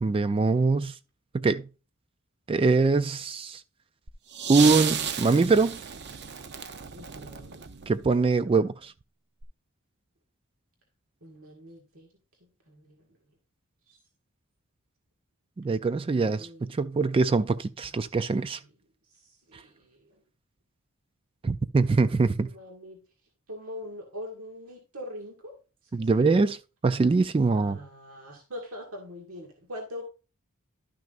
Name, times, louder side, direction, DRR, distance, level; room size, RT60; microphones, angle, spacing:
voice 1, 0.0-1.0 1.3-1.7 2.5-3.6 4.5-5.8 7.9-8.9 15.6-18.6 21.4-22.5 25.9-26.6 26.8-27.8, right 4 dB, 25° right, 0.3 m, -23 dB
sound 1, 4.1-8.3 9.4-9.5, right 7 dB, 50° right, 0.6 m, -33 dB
voice 2, 6.9-7.7 11.2-12.1 12.7-13.0 13.9-14.0 15.9-16.7 19.2-20.2 22.4-23.0 23.5-25.6 26.0-26.5 27.6-30.0, left 1 dB, 75° right, 1.8 m, -43 dB
12.0 x 6.2 x 2.5 m
head